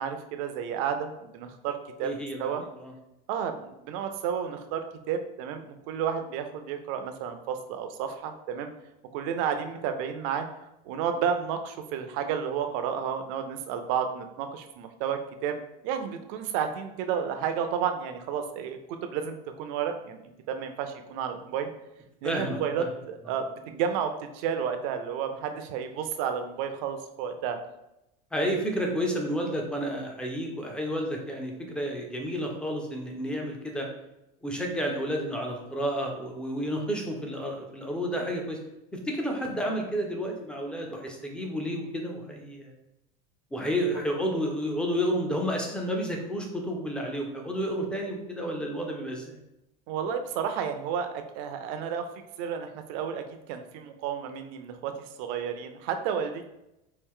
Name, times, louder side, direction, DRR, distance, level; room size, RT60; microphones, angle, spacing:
voice 1, 0.0-2.1 2.4-2.6 3.3-8.7 9.1-10.5 10.9-15.6 15.8-20.2 20.5-21.7 22.2-27.6 49.9-52.1 52.4-56.4, right 7 dB, 55° right, 7 dB, 0.5 m, -31 dB
voice 2, 2.0-2.9 22.2-22.9 28.3-33.9 34.4-38.6 38.9-42.7 43.5-49.4, equal, 5° left, 1 dB, 0.5 m, -31 dB
4.5 x 2.4 x 3.6 m, 0.89 s
supercardioid pair, 160°, 21 cm